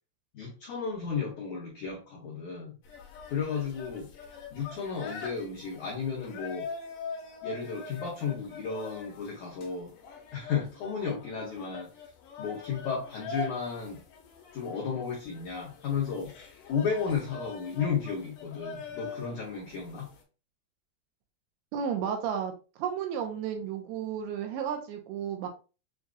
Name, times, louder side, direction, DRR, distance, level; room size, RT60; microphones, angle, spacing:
voice 1, 0.3-2.8 3.3-4.1 4.5-6.7 7.4-9.9 10.3-11.9 12.4-14.0 14.5-16.3 16.7-20.1, left 6 dB, 90° left, -3 dB, 1.6 m, -33 dB
sound 1, 2.8-20.2, left 4 dB, 70° left, 2.1 m, -43 dB
voice 2, 21.7-22.5 22.8-25.5, right 8 dB, 80° right, 4 dB, 2.6 m, -32 dB
7.1 x 2.4 x 2.4 m, 0.33 s
omnidirectional pair, 4.8 m